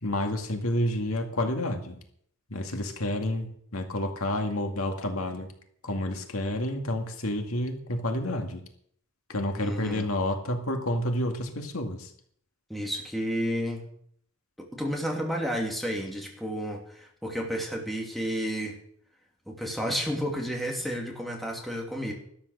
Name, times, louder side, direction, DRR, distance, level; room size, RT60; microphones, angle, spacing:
voice 1, 0.0-2.0 2.5-5.5 5.8-8.6 9.3-12.1, left 1 dB, 85° left, 4 dB, 2.2 m, -29 dB
voice 2, 9.6-10.0 12.7-13.8 14.6-18.8 19.5-22.1, equal, ahead, 0 dB, 2.9 m, -31 dB
13.0 x 12.5 x 6.6 m, 0.64 s
head